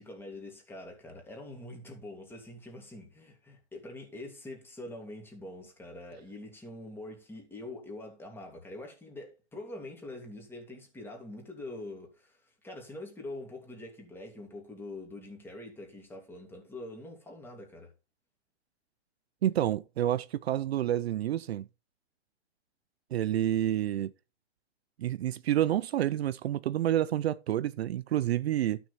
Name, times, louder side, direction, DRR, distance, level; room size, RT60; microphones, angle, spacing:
voice 1, 0.0-17.9, left 2 dB, 5° left, 2.8 m, -44 dB
voice 2, 19.4-21.7 23.1-24.1 25.0-28.8, right 12 dB, 65° right, 0.6 m, -29 dB
12.5 x 6.3 x 4.2 m
hypercardioid pair, 145°, 34 cm